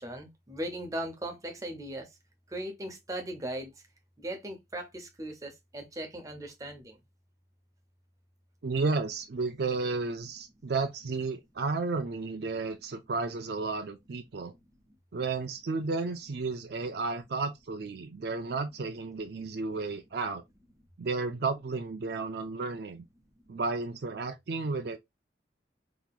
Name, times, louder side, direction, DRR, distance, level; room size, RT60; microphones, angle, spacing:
voice 1, 0.0-2.1 2.5-3.7 4.2-7.0, right 1 dB, 20° right, 0.8 m, -38 dB
voice 2, 8.6-14.5 15.1-20.4 21.0-23.0 23.5-25.0, right 3 dB, 60° right, 0.4 m, -32 dB
3.7 x 2.9 x 2.4 m
head